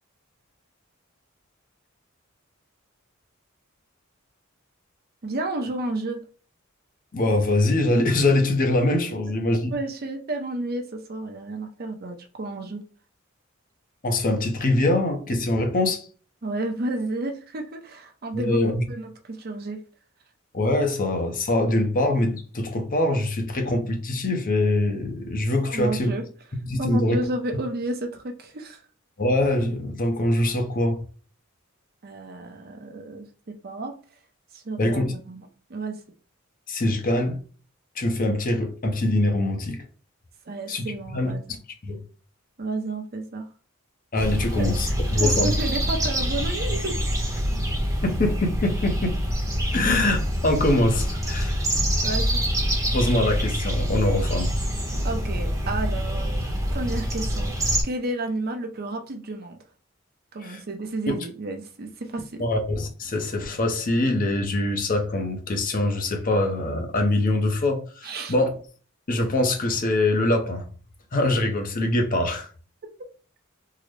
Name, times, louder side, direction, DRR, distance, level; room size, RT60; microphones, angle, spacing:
voice 1, 5.2-6.2 9.7-12.8 16.4-18.6 18.9-19.8 25.6-26.2 26.8-28.8 32.0-34.0 34.5-36.0 40.5-41.6 42.6-43.5 44.6-47.1 52.0-52.5 55.0-57.5 57.8-59.6 60.3-62.5 68.0-68.3, right 2 dB, 50° right, 0.6 m, -32 dB
voice 2, 7.1-9.7 14.0-16.1 18.3-18.8 20.5-26.1 26.7-27.2 29.2-31.0 34.8-35.1 36.7-37.4 38.0-39.8 40.7-40.9 41.1-41.3 41.9-42.0 44.1-45.5 48.0-49.2 49.7-51.6 52.9-54.5 60.4-60.6 61.1-61.2 62.4-68.6 69.1-70.7 71.1-72.5, left 1 dB, 45° left, 0.7 m, -23 dB
sound 1, 44.1-57.8, equal, 15° right, 0.8 m, -25 dB
3.7 x 2.1 x 3.1 m
head